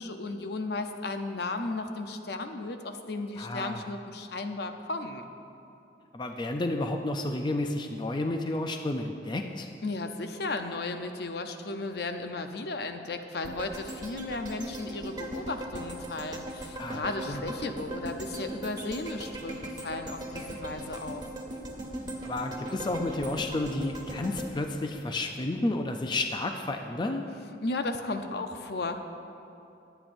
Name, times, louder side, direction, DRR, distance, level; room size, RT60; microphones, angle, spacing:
voice 1, 0.0-5.3 9.8-21.3 27.6-29.0, left 2 dB, 65° left, 6 dB, 0.7 m, -35 dB
voice 2, 3.4-3.9 6.1-9.7 16.8-17.4 22.2-27.3, left 2 dB, 25° left, 4 dB, 0.4 m, -31 dB
sound 1, 13.4-25.6 26.0-26.1, right 1 dB, 25° right, 1.5 m, -39 dB
22.0 x 8.9 x 2.6 m, 2.8 s
head